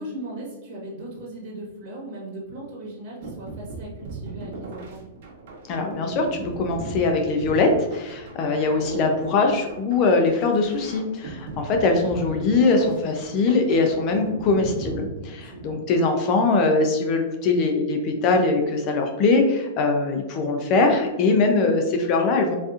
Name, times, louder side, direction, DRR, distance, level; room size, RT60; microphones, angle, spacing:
voice 1, 0.0-5.0 15.4-15.8, right 1 dB, 40° right, -5 dB, 1.3 m, -37 dB
sound 1, 3.2-15.8, right 3 dB, 55° right, 1.0 m, -38 dB
voice 2, 5.7-22.6, left 3 dB, 35° left, 4 dB, 0.5 m, -22 dB
3.9 x 2.6 x 2.4 m, 1.1 s
hypercardioid pair, 155°, 0 cm